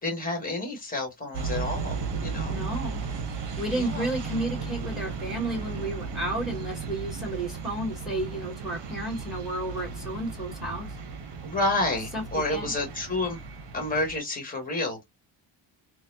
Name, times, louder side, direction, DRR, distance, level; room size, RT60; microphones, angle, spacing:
voice 1, 0.0-1.9 2.2-2.6 3.7-4.1 11.4-13.4 13.7-15.0, left 2 dB, 15° left, 1.5 m, -29 dB
sound 1, 1.3-14.2, right 5 dB, 60° right, 0.9 m, -35 dB
voice 2, 2.4-3.0 3.6-11.0 12.1-12.2 12.5-12.7, right 1 dB, ahead, 2.0 m, -32 dB
4.0 x 2.3 x 2.6 m
wide cardioid pair, 140°, 49 cm